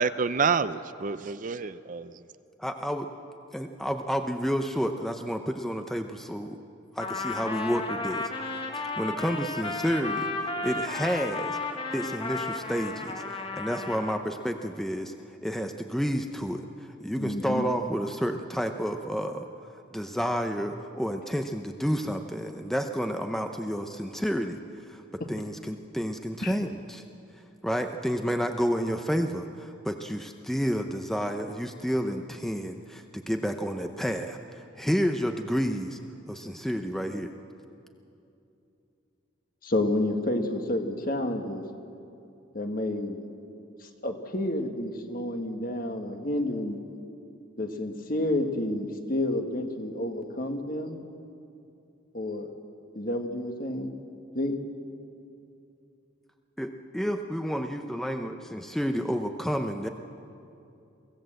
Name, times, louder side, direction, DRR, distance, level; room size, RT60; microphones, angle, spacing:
voice 1, 0.0-2.1, right 5 dB, 40° right, 13 dB, 0.5 m, -28 dB
voice 2, 2.6-3.1 3.5-6.6 6.9-8.3 8.7-11.6 11.9-15.1 15.4-19.5 19.9-24.6 24.9-27.0 27.6-36.0 36.3-37.3 56.6-59.9, equal, ahead, 5 dB, 0.6 m, -30 dB
Trumpet, 7.0-14.2, left 3 dB, 25° left, 1.5 m, -33 dB
voice 3, 17.1-17.7 26.4-26.6 39.6-41.6 42.5-43.2 44.0-46.8 47.6-51.0 52.1-52.5 53.0-53.9 54.4-54.6, left 1 dB, 45° left, 5 dB, 1.6 m, -30 dB
24.0 x 16.5 x 7.7 m, 2.7 s
head